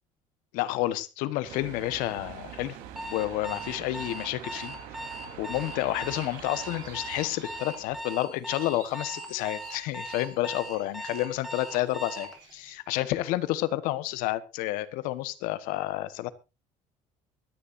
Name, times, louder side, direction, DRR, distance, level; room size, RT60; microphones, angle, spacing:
voice 1, 0.5-2.8 3.1-4.7 5.4-16.3, left 16 dB, 85° left, 1.3 m, -30 dB
sound 1, 1.4-8.0, right 10 dB, 80° right, 3.7 m, -44 dB
Alarm, 3.0-12.4, right 1 dB, ahead, 2.4 m, -39 dB
sound 2, 5.5-12.7, right 5 dB, 30° right, 6.3 m, -53 dB
24.0 x 10.5 x 2.6 m
cardioid pair, 165°, 14 cm